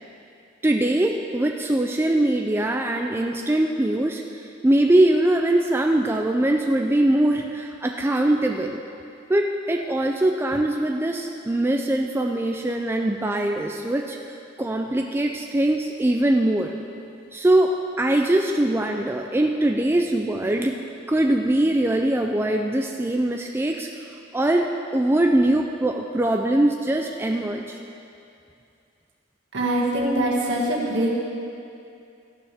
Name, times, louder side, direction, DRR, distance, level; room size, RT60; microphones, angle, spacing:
voice 1, 0.6-8.8 9.3-14.2 14.6-16.7 17.3-20.7 21.1-23.9 24.3-27.8, right 1 dB, 10° right, 2 dB, 0.4 m, -22 dB
voice 2, 29.5-31.1, right 1 dB, 65° right, -3 dB, 2.0 m, -23 dB
14.0 x 12.0 x 3.5 m, 2.6 s
head